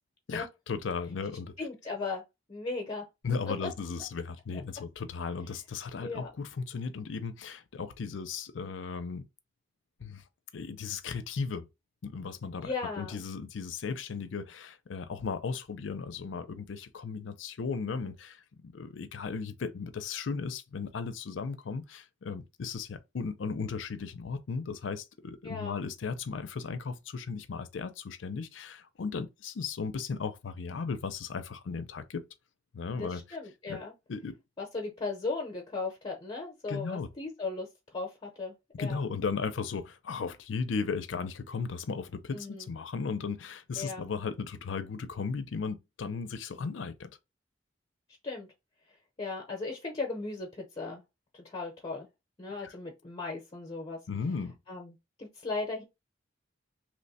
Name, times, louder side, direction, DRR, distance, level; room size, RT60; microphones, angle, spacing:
voice 1, 0.3-1.5 3.2-9.3 10.0-10.2 10.5-11.7 12.0-32.2 32.7-33.4 33.7-33.8 34.1-34.4 36.7-37.1 38.8-47.1 52.6-52.8 54.1-54.6, left 5 dB, 80° left, 0.5 m, -36 dB
voice 2, 1.6-2.2 2.5-3.0 3.5-3.7 6.0-6.3 12.6-13.2 25.4-25.8 32.9-33.9 34.6-37.7 37.9-39.0 42.3-42.7 43.8-44.1 48.2-48.5 49.2-51.0 51.3-52.1 52.4-54.0 54.7-55.8, left 3 dB, 30° left, 0.7 m, -37 dB
3.0 x 2.1 x 4.0 m
head